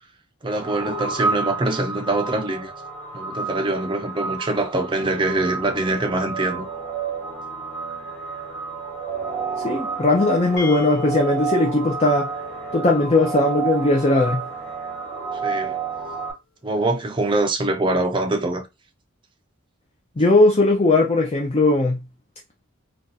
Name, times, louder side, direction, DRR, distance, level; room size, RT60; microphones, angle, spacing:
voice 1, 0.4-2.7 3.1-6.7 15.4-15.8 16.6-18.6, right 2 dB, 25° right, 0.4 m, -24 dB
sound 1, 0.5-16.3, right 5 dB, 5° left, 1.2 m, -30 dB
voice 2, 9.6-12.3 12.7-14.4 20.2-22.0, left 2 dB, 30° left, 0.5 m, -18 dB
sound 2, 10.6-14.3, left 7 dB, 55° left, 1.2 m, -36 dB
2.6 x 2.3 x 3.9 m
head